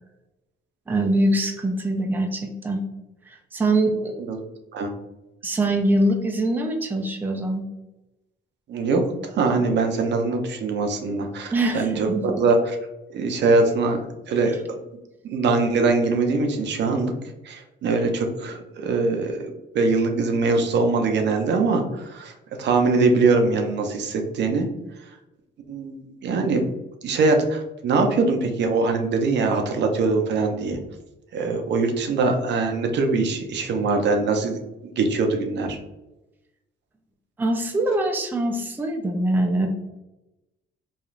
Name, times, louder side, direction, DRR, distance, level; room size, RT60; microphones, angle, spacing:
voice 1, 0.9-2.8 3.3-4.2 5.4-7.6 11.5-12.4 37.4-39.7, right 1 dB, 10° right, 3 dB, 0.4 m, -23 dB
voice 2, 8.7-9.0 9.3-12.1 12.4-12.8 13.1-14.0 14.3-14.6 15.2-17.1 17.4-19.4 19.7-22.3 22.6-24.7 25.7-25.9 26.2-26.6 27.0-30.8 31.3-34.6 34.9-35.8, right 3 dB, 60° right, 4 dB, 0.5 m, -22 dB
3.0 x 2.4 x 2.4 m, 0.98 s
cardioid pair, 90°, 20 cm